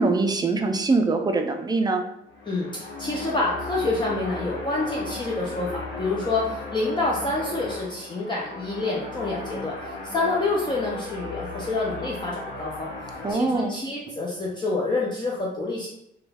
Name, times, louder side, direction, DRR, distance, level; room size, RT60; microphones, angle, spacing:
voice 1, 0.0-2.0 13.2-13.8, right 3 dB, 20° right, 4 dB, 0.4 m, -23 dB
sound 1, 2.2-13.3, left 2 dB, 75° left, 1.1 m, -36 dB
voice 2, 2.4-15.9, left 2 dB, 25° left, -4 dB, 0.6 m, -28 dB
3.0 x 2.3 x 3.4 m, 0.78 s
cardioid pair, 90°, 20 cm